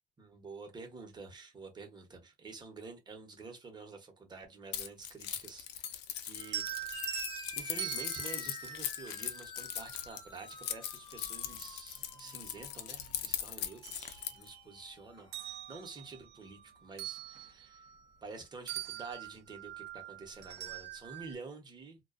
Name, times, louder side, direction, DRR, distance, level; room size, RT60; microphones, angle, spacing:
voice 1, 0.2-7.1 7.5-17.9 18.2-22.0, right 4 dB, 25° right, 0.9 m, -49 dB
Keys jangling, 4.7-14.5, left 10 dB, 85° left, 0.5 m, -40 dB
sound 1, 6.4-9.7 11.4-11.5 12.0-13.2 13.6-14.8 15.2-18.4 18.7-21.3, right 12 dB, 85° right, 0.5 m, -44 dB
sound 2, 6.9-15.8, left 4 dB, 30° left, 0.5 m, -49 dB
2.4 x 2.2 x 2.4 m
cardioid pair, 110°, 17 cm